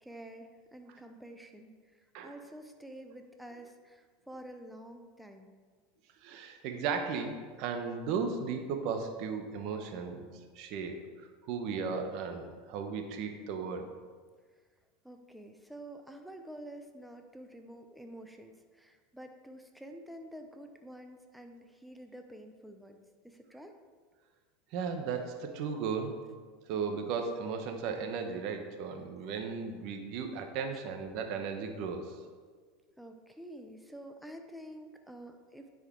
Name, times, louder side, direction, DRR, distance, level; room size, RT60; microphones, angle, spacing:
voice 1, 0.0-5.5 15.0-23.0 23.2-23.7 33.0-35.7, right 1 dB, ahead, 5 dB, 0.6 m, -49 dB
voice 2, 6.2-10.3 10.5-11.0 11.5-13.9 24.7-26.2 26.7-32.1, right 5 dB, 55° right, 5 dB, 1.1 m, -35 dB
9.9 x 4.9 x 4.6 m, 1.5 s
supercardioid pair, 120°, 0 cm